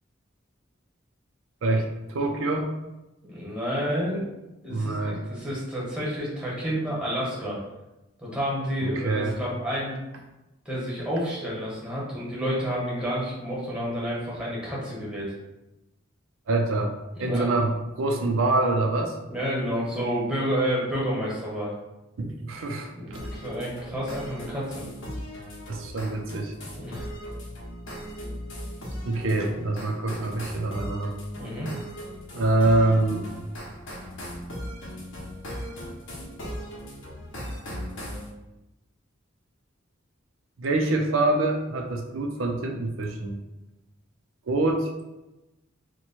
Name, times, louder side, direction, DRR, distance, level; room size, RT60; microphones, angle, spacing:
voice 1, 1.6-2.7 4.7-5.2 8.8-9.3 16.5-16.9 17.2-19.1 22.2-23.3 25.7-26.5 29.0-31.2 32.3-33.3 40.6-43.4 44.5-44.9, right 2 dB, 90° right, 2 dB, 0.5 m, -25 dB
voice 2, 3.3-4.3 4.6-7.6 8.2-10.0 10.6-15.3 17.1-17.5 19.3-21.7 22.9-24.8 26.7-27.1 31.4-31.7, equal, 5° right, -6 dB, 1.1 m, -30 dB
sound 1, 23.1-38.3, equal, 70° left, 0.8 m, -38 dB
3.0 x 2.2 x 4.2 m, 0.99 s
head